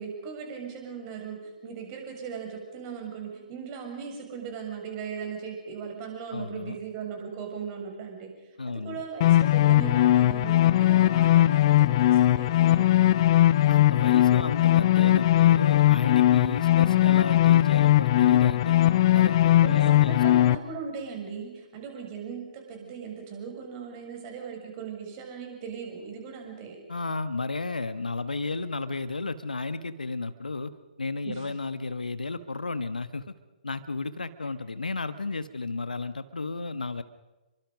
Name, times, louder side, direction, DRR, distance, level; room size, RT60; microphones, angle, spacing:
voice 1, 0.0-13.1 19.6-26.8 31.3-31.6, right 6 dB, 30° right, 2 dB, 7.2 m, -38 dB
voice 2, 6.3-6.8 8.6-9.0 13.7-18.8 19.1-20.4 26.9-30.7 31.0-33.3 33.6-37.0, left 3 dB, 75° left, 12 dB, 1.4 m, -33 dB
sound 1, 9.2-20.5, left 13 dB, 35° left, 0.8 m, -20 dB
29.0 x 23.5 x 5.4 m, 1.1 s
figure-of-eight pair, 130°, 5 cm